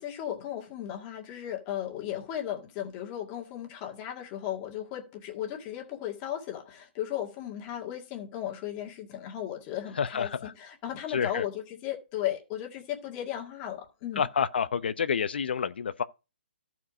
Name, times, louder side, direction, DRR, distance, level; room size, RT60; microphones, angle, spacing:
voice 1, 0.0-10.3 10.6-14.2, left 11 dB, 25° left, 1.9 m, -36 dB
voice 2, 10.0-10.5 11.1-11.5 14.2-16.0, left 7 dB, 65° left, 0.7 m, -29 dB
13.0 x 4.7 x 4.9 m
hypercardioid pair, 155°, 6 cm